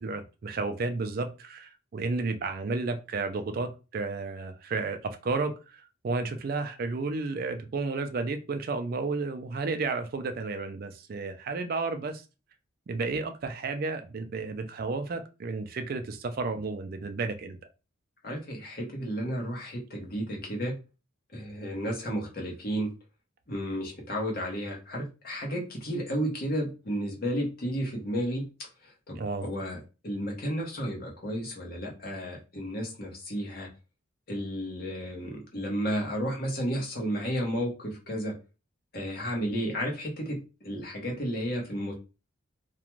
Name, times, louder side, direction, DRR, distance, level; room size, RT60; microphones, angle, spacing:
voice 1, 0.0-12.2 12.9-17.6 29.2-29.4, right 3 dB, 45° right, 0.3 m, -32 dB
voice 2, 18.2-20.8 21.3-22.9 23.5-28.5 28.8-33.7 34.3-38.4 38.9-41.9, equal, 45° left, 0.9 m, -32 dB
2.5 x 2.2 x 3.0 m
head